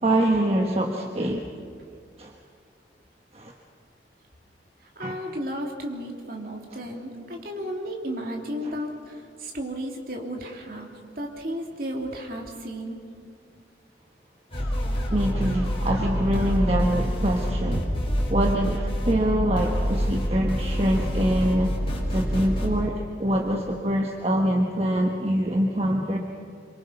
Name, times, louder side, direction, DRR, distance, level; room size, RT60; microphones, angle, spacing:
voice 1, 0.0-1.5 2.2-2.3 3.3-3.5 5.0-5.2 14.6-14.7 15.1-21.8 22.1-26.2, right 1 dB, 35° right, 1 dB, 1.3 m, -25 dB
voice 2, 4.9-13.0, equal, 55° right, 0 dB, 3.1 m, -34 dB
sound 1, 14.5-22.7, equal, 30° left, 4.6 m, -26 dB
26.5 x 24.0 x 5.8 m, 2.3 s
head